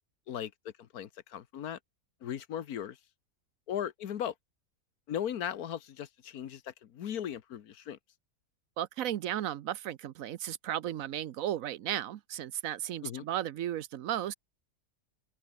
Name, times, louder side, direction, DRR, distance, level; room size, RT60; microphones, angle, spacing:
voice 1, 0.8-1.8 2.2-3.0 3.7-4.3 5.1-8.0 13.0-13.2, left 9 dB, 80° left, 1.5 m, -37 dB
voice 2, 8.8-14.3, right 11 dB, 70° right, 1.1 m, -35 dB
omnidirectional pair, 1.5 m